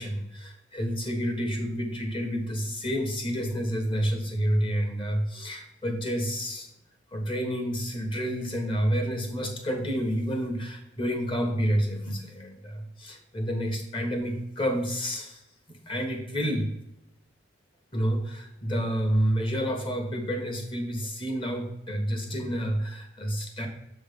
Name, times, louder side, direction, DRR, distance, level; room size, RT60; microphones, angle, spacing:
voice 1, 0.0-6.7 7.1-15.4 15.7-16.7 17.9-23.7, equal, 30° left, 2 dB, 1.4 m, -29 dB
7.4 x 3.6 x 5.2 m, 0.86 s
head